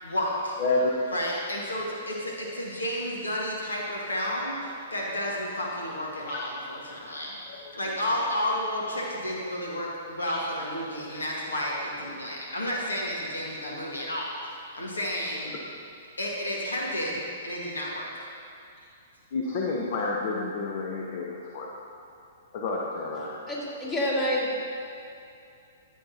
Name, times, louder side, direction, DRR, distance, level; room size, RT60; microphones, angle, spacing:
voice 1, 0.0-0.6 1.1-7.4 7.7-15.5 16.2-18.2, equal, 75° left, -3 dB, 1.6 m, -31 dB
voice 2, 0.6-1.0 6.3-6.4 7.5-7.7 19.3-21.7 22.5-23.3, left 3 dB, 45° left, -2 dB, 1.1 m, -29 dB
voice 3, 23.5-24.6, equal, 25° left, -5 dB, 2.4 m, -27 dB
13.5 x 8.2 x 2.9 m, 2.5 s
figure-of-eight pair, 110°, 0 cm